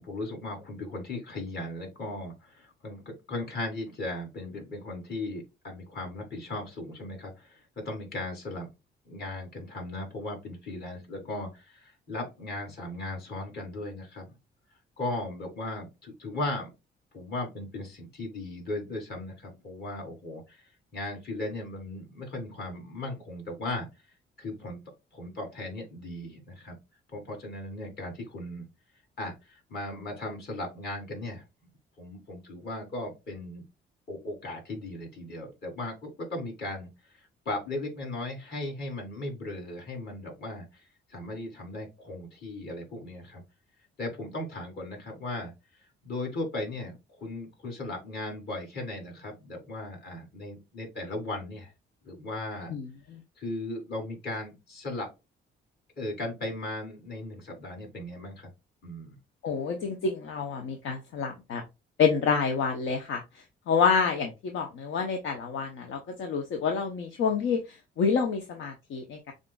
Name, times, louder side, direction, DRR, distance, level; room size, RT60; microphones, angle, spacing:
voice 1, 0.0-8.7 9.0-14.3 15.0-16.7 17.1-20.6 20.9-23.9 24.4-24.8 25.1-26.8 27.1-28.6 29.2-31.4 32.0-33.6 34.1-43.4 44.0-45.5 46.0-46.9 47.2-51.7 52.0-52.7 53.4-55.1 56.0-58.5 58.8-59.2, left 2 dB, 55° left, 1 dB, 2.9 m, -37 dB
voice 2, 52.7-53.2 59.4-61.6 62.0-63.2 63.7-69.3, left 5 dB, 75° left, 4 dB, 0.8 m, -28 dB
7.3 x 2.6 x 2.3 m, 0.24 s
cardioid pair, 90°, 20 cm